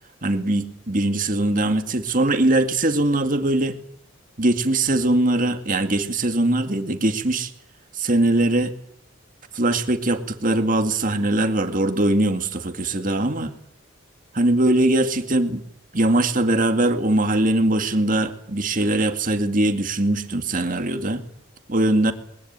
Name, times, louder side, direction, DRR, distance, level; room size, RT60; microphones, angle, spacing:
voice 1, 0.2-3.8 4.4-7.5 7.9-8.8 9.5-13.5 14.3-15.6 15.9-21.2 21.7-22.1, right 1 dB, 40° right, 7 dB, 2.2 m, -21 dB
21.0 x 19.0 x 9.0 m, 0.67 s
head